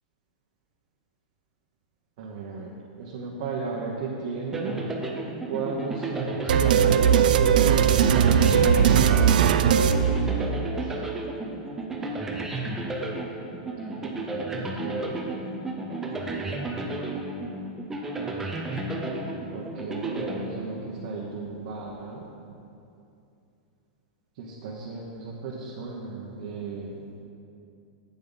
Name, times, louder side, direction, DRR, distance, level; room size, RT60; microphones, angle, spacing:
voice 1, 2.2-4.8 5.5-9.2 9.6-11.0 14.0-15.2 19.5-22.3 24.4-27.0, right 4 dB, 55° right, -3 dB, 1.0 m, -34 dB
sound 1, 4.5-21.1, right 2 dB, 10° right, 0.7 m, -33 dB
sound 2, 6.5-10.8, right 8 dB, 80° right, 0.4 m, -19 dB
8.5 x 7.3 x 4.0 m, 2.6 s
supercardioid pair, 155°, 5 cm